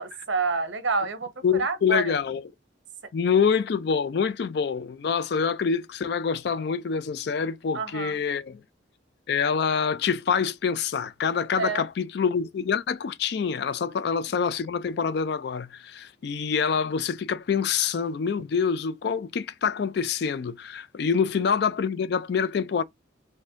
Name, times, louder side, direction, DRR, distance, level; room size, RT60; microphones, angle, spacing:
voice 1, 0.0-2.1 7.7-8.1 11.5-11.8 13.9-14.0, right 4 dB, 75° right, 0.9 m, -28 dB
voice 2, 1.4-2.5 3.1-8.6 9.3-22.8, left 6 dB, 55° left, 0.3 m, -26 dB
4.2 x 2.6 x 2.4 m
head